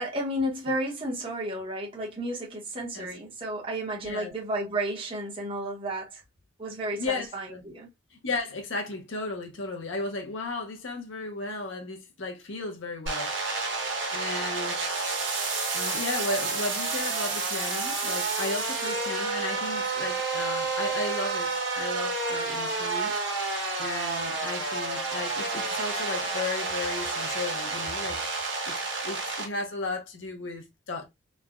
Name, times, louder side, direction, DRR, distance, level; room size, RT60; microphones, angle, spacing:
voice 1, 0.0-6.2 6.6-7.9, right 1 dB, 30° right, 1.0 m, -32 dB
voice 2, 4.0-4.3 6.9-7.6 8.1-13.3 14.1-14.8 15.7-23.1 23.8-28.2 28.6-28.7 29.0-31.1, left 3 dB, 80° left, 0.8 m, -34 dB
sound 1, 13.1-29.5, right 3 dB, 70° right, 1.2 m, -30 dB
3.3 x 2.2 x 2.3 m
head